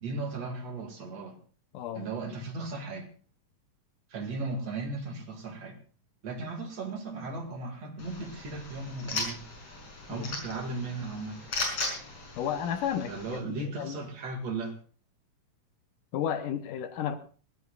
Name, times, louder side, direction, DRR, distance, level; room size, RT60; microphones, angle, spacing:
voice 1, 0.0-1.4 1.9-3.1 4.1-5.8 6.2-9.4 10.1-11.4 13.1-14.7, right 3 dB, 50° right, 2.9 m, -36 dB
voice 2, 1.7-2.1 10.1-10.3 12.4-14.0 16.1-17.2, left 9 dB, 75° left, 2.4 m, -33 dB
sound 1, 8.0-13.4, left 2 dB, 45° left, 6.6 m, -37 dB
22.0 x 18.0 x 2.4 m
omnidirectional pair, 4.0 m